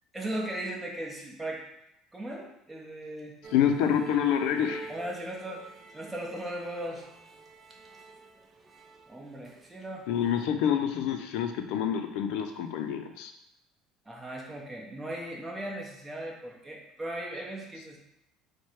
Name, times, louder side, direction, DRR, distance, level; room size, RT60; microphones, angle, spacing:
voice 1, 0.1-1.6 2.1-3.3 4.9-5.6 5.9-7.1 9.1-10.1 14.1-18.0, right 1 dB, 15° right, -2 dB, 1.0 m, -37 dB
sound 1, 3.4-9.9 10.1-10.5, right 3 dB, 30° right, 0.5 m, -46 dB
voice 2, 3.5-4.9 10.1-13.3, left 9 dB, 75° left, 6 dB, 0.5 m, -27 dB
4.4 x 2.2 x 4.5 m, 0.83 s
cardioid pair, 110°, 0 cm